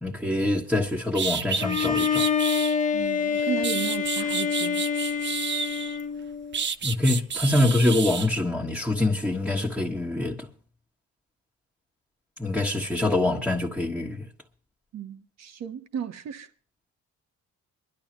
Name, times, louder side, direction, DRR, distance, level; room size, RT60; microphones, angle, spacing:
voice 1, 0.0-2.3 6.8-10.5 12.4-14.3, left 2 dB, ahead, 1.5 m, -25 dB
sound 1, 0.7-0.8 1.1-2.8 3.4-6.0 6.5-8.3, right 6 dB, 40° right, 0.7 m, -30 dB
Bowed string instrument, 1.6-6.6, left 7 dB, 25° left, 1.3 m, -26 dB
voice 2, 2.9-4.8 14.9-16.5, right 8 dB, 60° right, 1.3 m, -34 dB
23.5 x 12.0 x 3.0 m
cardioid pair, 90°, 30 cm